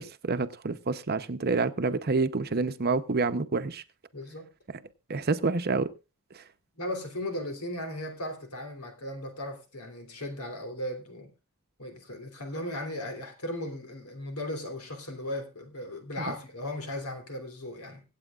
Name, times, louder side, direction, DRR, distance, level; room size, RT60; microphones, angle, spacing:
voice 1, 0.0-3.8 5.1-5.9 6.3-6.4 16.3-16.4, right 3 dB, 45° right, 0.8 m, -28 dB
voice 2, 4.1-4.5 6.7-11.3 11.8-18.0, left 1 dB, 85° left, 3.3 m, -37 dB
25.0 x 8.5 x 2.4 m
head